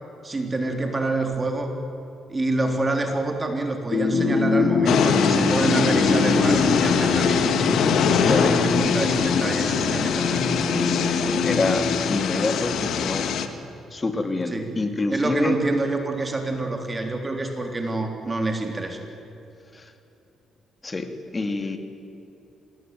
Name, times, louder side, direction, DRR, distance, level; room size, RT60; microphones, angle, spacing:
voice 1, 0.2-1.7 2.3-7.5 8.0-10.4 14.5-14.7 15.1-19.0, right 2 dB, 25° right, 4 dB, 3.6 m, -27 dB
sound 1, 3.9-12.9, left 4 dB, 50° left, 3.9 m, -24 dB
sound 2, 4.9-13.5, left 6 dB, 75° left, 1.9 m, -23 dB
voice 2, 9.6-9.9 10.5-13.3 13.9-15.6 19.7-19.9 20.8-21.1 21.3-21.8, left 3 dB, 25° left, 7 dB, 2.6 m, -27 dB
26.0 x 20.0 x 9.3 m, 3.0 s
cardioid pair, 90°, 0 cm